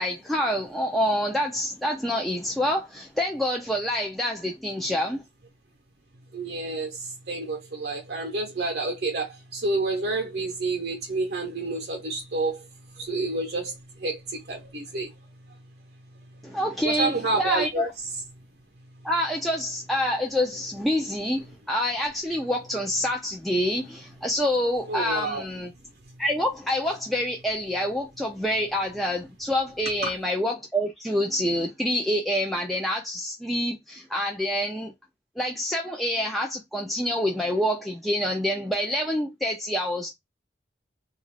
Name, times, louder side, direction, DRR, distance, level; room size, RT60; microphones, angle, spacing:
voice 1, 0.0-5.2 16.4-17.9 19.0-25.7 26.2-34.9 35.4-40.1, left 1 dB, ahead, 0.3 m, -27 dB
voice 2, 6.3-15.1 15.5-15.6 16.8-17.9 24.9-25.5 30.0-30.1, right 3 dB, 65° right, 0.7 m, -29 dB
2.4 x 2.3 x 3.2 m
head